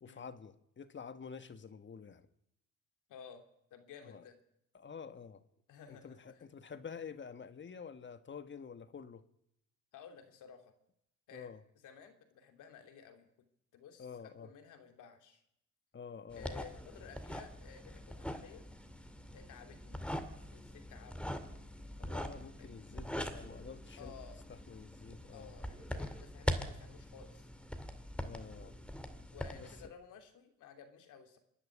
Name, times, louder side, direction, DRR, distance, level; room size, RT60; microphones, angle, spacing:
voice 1, 0.0-2.2 4.0-4.2 4.7-5.4 5.9-9.2 11.3-11.6 14.0-14.5 15.9-16.5 22.0-24.1 24.5-25.6 28.2-28.7 29.5-29.7, left 6 dB, 40° left, 1.4 m, -49 dB
voice 2, 3.1-3.4 3.7-4.3 5.7-6.4 9.9-10.7 11.3-11.5 11.8-13.3 13.7-15.4 16.3-18.6 19.3-20.0 20.5-21.3 22.6-22.7 24.0-24.4 25.3-27.5 29.3-31.4, left 7 dB, 85° left, 3.0 m, -55 dB
sound 1, 16.3-29.9, equal, 5° left, 2.2 m, -43 dB
26.5 x 10.5 x 9.9 m
cardioid pair, 90°, 30 cm